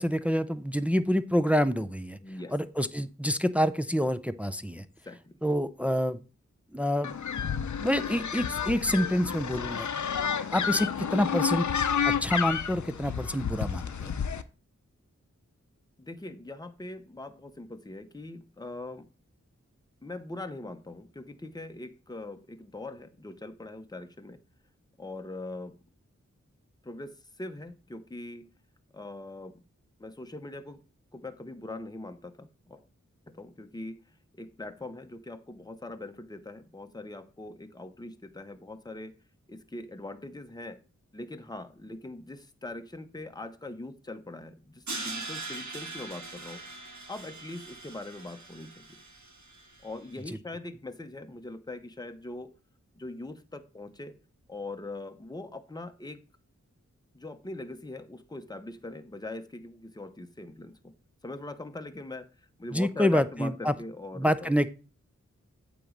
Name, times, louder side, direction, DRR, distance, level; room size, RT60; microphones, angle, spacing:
voice 1, 0.0-2.2 2.5-4.8 5.4-6.2 6.7-7.1 7.8-9.9 10.5-11.7 12.0-14.1 62.7-63.7 64.1-64.7, equal, 5° right, 12 dB, 0.5 m, -27 dB
voice 2, 2.2-2.5 4.8-5.4 16.0-19.1 20.0-24.4 25.0-25.7 26.8-28.5 28.9-29.6 30.0-30.8 31.1-32.8 33.3-34.0 34.4-39.1 39.5-40.8 41.1-46.6 47.1-49.0 49.8-52.5 52.9-54.1 54.5-56.2 57.1-60.9 61.2-62.3 62.6-64.5, left 2 dB, 15° left, 8 dB, 0.8 m, -41 dB
sound 1, 7.0-14.4, left 7 dB, 70° left, 0.6 m, -30 dB
Crash cymbal, 44.9-49.9, right 3 dB, 70° right, 1.5 m, -41 dB
8.5 x 3.1 x 6.5 m, 0.34 s
wide cardioid pair, 45°, 30 cm